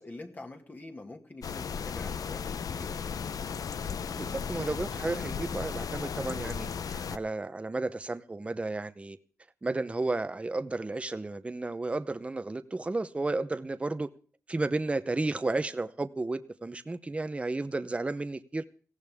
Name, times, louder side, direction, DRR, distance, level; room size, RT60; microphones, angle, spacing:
voice 1, 0.0-3.2, left 2 dB, 30° left, 2.0 m, -45 dB
sound 1, 1.4-7.2, left 6 dB, 80° left, 0.8 m, -35 dB
voice 2, 4.2-9.2 9.6-14.1 14.5-18.6, right 2 dB, 20° right, 0.8 m, -33 dB
19.0 x 16.5 x 3.6 m
wide cardioid pair, 170°, 6 cm